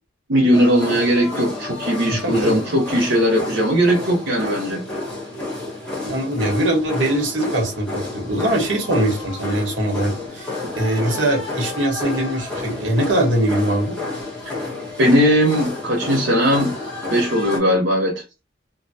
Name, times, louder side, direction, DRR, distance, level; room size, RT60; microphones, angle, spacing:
voice 1, 0.3-4.8 15.0-16.7 17.1-18.2, equal, 70° right, 0.6 m, -18 dB
sound 1, 0.5-17.6, left 2 dB, 5° left, 1.1 m, -30 dB
voice 2, 2.1-2.6 6.0-10.5 10.7-13.9, right 1 dB, 85° right, 1.1 m, -22 dB
3.1 x 2.1 x 2.6 m
head